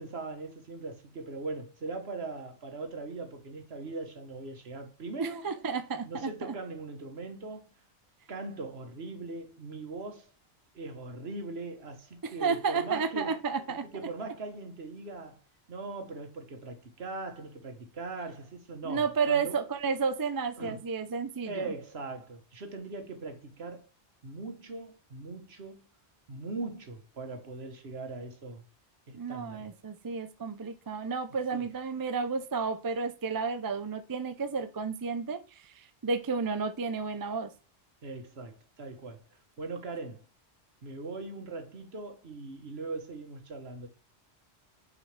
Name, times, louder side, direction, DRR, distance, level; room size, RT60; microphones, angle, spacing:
voice 1, 0.0-5.4 6.0-7.7 8.3-10.3 10.7-13.3 13.9-15.4 15.7-19.6 20.6-20.7 21.4-23.9 24.2-25.8 26.3-28.6 29.1-29.7 31.5-31.6 38.0-39.2 39.6-40.3 40.8-43.9, right 3 dB, 60° right, 1.5 m, -40 dB
voice 2, 5.1-6.5 12.2-13.9 18.8-21.7 29.1-37.5, right 5 dB, 30° right, 0.4 m, -32 dB
6.6 x 4.9 x 3.3 m
omnidirectional pair, 1.2 m